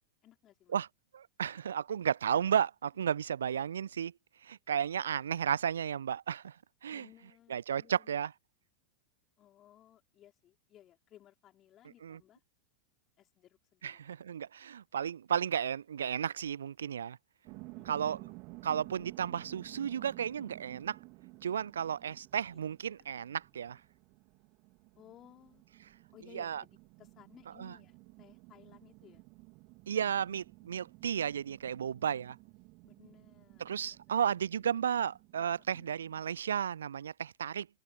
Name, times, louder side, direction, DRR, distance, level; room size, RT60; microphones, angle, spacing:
voice 1, 0.2-0.8 6.9-8.2 9.4-12.4 13.2-14.0 17.8-18.4 22.1-22.3 22.5-22.6 25.0-25.6 26.1-29.2 32.8-34.4 35.6-36.0, left 12 dB, 30° left, 5.2 m, -60 dB
voice 2, 1.1-4.1 4.4-6.5 6.8-7.1 7.5-8.3 12.0-12.2 13.8-17.2 17.8-18.2 18.6-21.0 21.4-23.8 26.3-26.6 27.6-27.7 29.9-32.4 33.6-37.7, right 8 dB, 65° right, 0.4 m, -33 dB
sound 1, 17.4-36.4, right 27 dB, 40° right, 3.1 m, -54 dB
open air
figure-of-eight pair, 90°, 0 cm